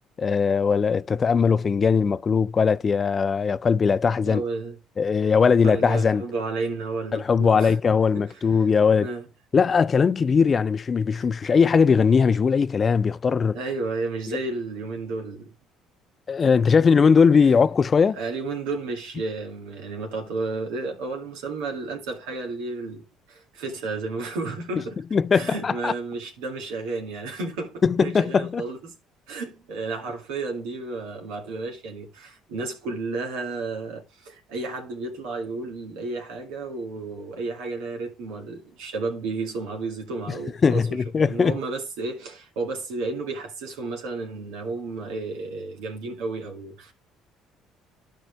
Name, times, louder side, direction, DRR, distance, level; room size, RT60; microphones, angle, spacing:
voice 1, 0.2-4.4 5.0-6.2 7.1-9.1 9.5-13.6 14.3-14.4 16.3-18.2 25.1-25.9 27.8-28.6 40.6-41.6, left 5 dB, 40° left, 0.4 m, -20 dB
voice 2, 4.2-4.8 5.4-7.8 8.2-8.7 9.0-9.3 11.1-11.2 13.5-15.5 17.4-17.5 18.1-25.0 25.3-28.9 29.3-46.9, right 3 dB, 80° right, 2.0 m, -32 dB
12.5 x 4.6 x 3.4 m
hypercardioid pair, 70°, 0 cm